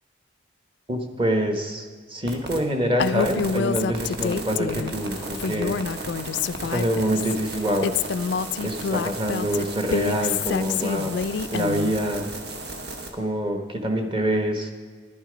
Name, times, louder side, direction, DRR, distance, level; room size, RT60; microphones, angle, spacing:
voice 1, 0.9-6.2 6.6-7.9 8.6-11.1 11.5-12.3 13.1-14.7, equal, 25° right, 5 dB, 1.1 m, -26 dB
sound 1, 2.3-2.6 3.0-13.1, right 2 dB, 55° right, 1.3 m, -35 dB
Female speech woman speaking, 3.0-4.9 5.3-7.4 7.8-12.0, left 6 dB, 65° left, 0.3 m, -27 dB
11.0 x 10.0 x 5.1 m, 1.5 s
head